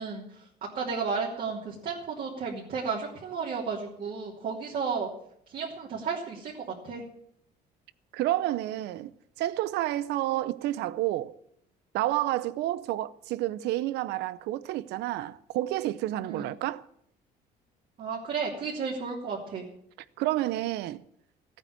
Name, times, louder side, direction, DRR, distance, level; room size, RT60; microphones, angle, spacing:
voice 1, 0.0-5.1 5.5-7.0 16.2-16.5 18.0-19.7, right 5 dB, 60° right, 3.3 m, -33 dB
voice 2, 8.1-9.1 9.4-11.3 11.9-16.8 20.2-21.0, right 15 dB, 85° right, 0.6 m, -29 dB
15.0 x 9.0 x 8.9 m
cardioid pair, 110°, 17 cm